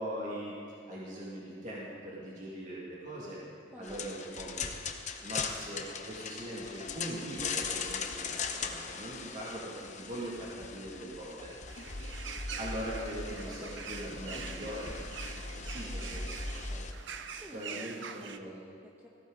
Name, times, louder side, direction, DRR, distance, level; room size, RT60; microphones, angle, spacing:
voice 1, 0.0-3.4 3.8-4.7 5.2-11.6 12.6-15.0 15.5-16.2 17.5-18.6, equal, 40° right, -6 dB, 2.5 m, -41 dB
voice 2, 3.7-4.3 5.1-5.4 13.5-14.8 15.7-16.9 17.4-19.1, equal, 10° right, -2 dB, 1.2 m, -53 dB
sound 1, 3.8-16.9, left 4 dB, 40° left, 0.9 m, -39 dB
sound 2, 11.7-18.4, right 6 dB, 65° right, 0.7 m, -44 dB
18.5 x 14.5 x 4.0 m, 2.4 s
head